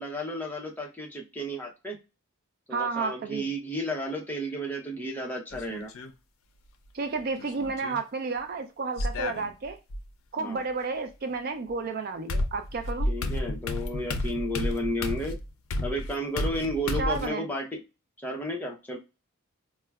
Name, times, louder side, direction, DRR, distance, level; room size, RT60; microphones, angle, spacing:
voice 1, 0.0-2.0 2.7-5.9 10.4-10.6 13.1-15.4 15.8-17.8 18.2-19.0, equal, 10° left, -1 dB, 0.6 m, -32 dB
voice 2, 2.7-3.5 6.9-9.8 10.3-13.1 16.9-17.5, right 4 dB, 45° right, 7 dB, 0.4 m, -31 dB
sound 1, 5.5-6.1 7.4-8.0 9.0-10.0 11.7-11.8 12.3-17.3, left 1 dB, 80° left, 0.4 m, -31 dB
4.4 x 2.1 x 2.2 m, 0.28 s
head